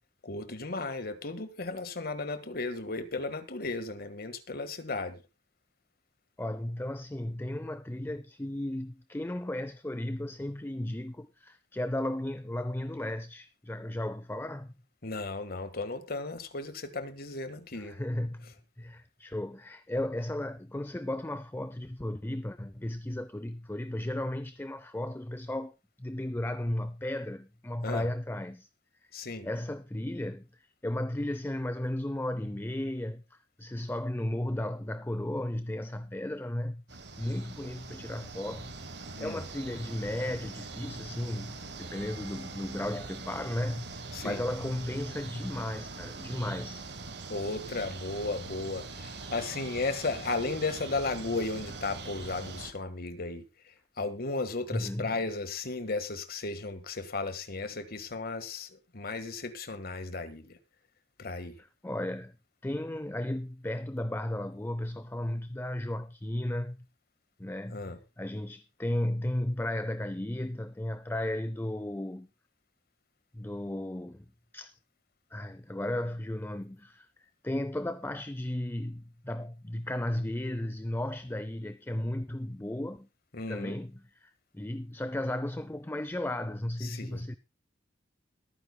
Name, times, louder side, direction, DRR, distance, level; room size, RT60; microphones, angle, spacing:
voice 1, 0.2-5.2 15.0-18.0 18.4-18.5 27.8-28.1 29.1-29.5 39.2-39.4 44.1-44.4 47.3-53.4 54.0-60.6 61.2-61.6 67.7-68.0 83.3-83.8 86.8-87.2, left 3 dB, 55° left, 1.7 m, -35 dB
voice 2, 6.4-14.8 17.7-18.5 18.8-28.7 29.4-38.7 39.2-46.9 54.7-55.2 61.6-62.3 62.6-66.9 67.4-72.3 73.3-74.3 74.5-74.8 75.3-83.1 83.5-87.4, left 1 dB, 10° left, 0.5 m, -35 dB
sound 1, 36.9-52.7, right 3 dB, 65° right, 1.9 m, -43 dB
22.0 x 9.6 x 2.3 m
head